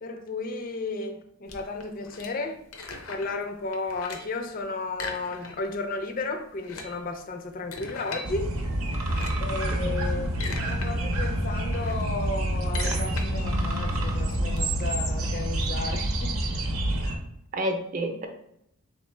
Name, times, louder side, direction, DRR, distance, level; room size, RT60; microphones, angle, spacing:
voice 1, 0.0-2.6 3.1-8.5 9.4-10.3 10.6-16.7, left 3 dB, 40° left, 5 dB, 0.4 m, -34 dB
sound 1, 1.5-3.4 3.7-4.4 4.9-5.8 6.1-6.2 6.5-8.3 8.9-9.5 10.1-10.9 11.3-14.6, left 3 dB, 80° left, 0.6 m, -39 dB
sound 2, 8.2-17.2, right 1 dB, 90° right, 0.7 m, -27 dB
voice 2, 17.5-18.3, right 1 dB, 40° right, 4 dB, 0.6 m, -30 dB
3.9 x 3.0 x 3.2 m, 0.76 s
head